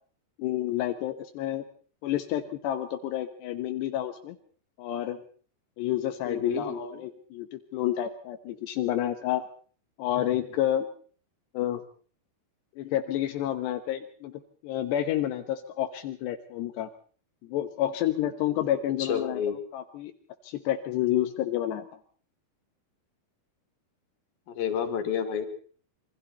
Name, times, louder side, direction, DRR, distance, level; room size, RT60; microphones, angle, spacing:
voice 1, 0.4-1.6 2.0-4.4 4.8-5.2 5.8-9.5 10.0-10.9 11.5-11.8 12.8-16.9 17.5-20.1 20.4-21.9, left 12 dB, 85° left, 6 dB, 3.4 m, -29 dB
voice 2, 6.3-7.0 19.0-19.6 24.6-25.5, left 7 dB, 60° left, 6 dB, 4.3 m, -29 dB
27.0 x 23.5 x 4.2 m, 0.43 s
omnidirectional pair, 4.8 m